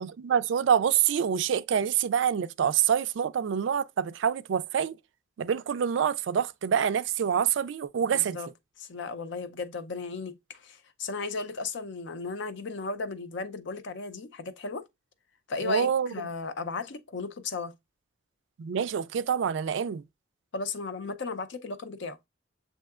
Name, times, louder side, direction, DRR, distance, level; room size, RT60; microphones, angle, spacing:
voice 1, 0.2-5.0 5.4-8.4 15.6-16.1 18.6-20.0, right 8 dB, 65° right, 0.3 m, -26 dB
voice 2, 8.1-8.5 8.8-14.8 15.5-17.7 20.5-22.2, left 3 dB, 65° left, 0.5 m, -35 dB
7.4 x 2.7 x 2.3 m
head